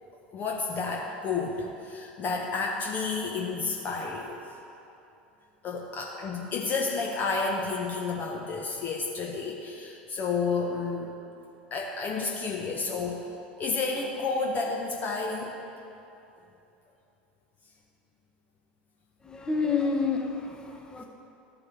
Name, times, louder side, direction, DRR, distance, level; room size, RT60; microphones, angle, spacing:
voice 1, 0.3-4.5 5.6-11.2 11.7-13.3 13.6-15.6, left 4 dB, 35° left, 0 dB, 0.8 m, -31 dB
voice 2, 19.2-21.0, left 4 dB, 15° left, 1 dB, 1.0 m, -29 dB
13.5 x 4.8 x 3.6 m, 2.8 s
figure-of-eight pair, 75°, 5 cm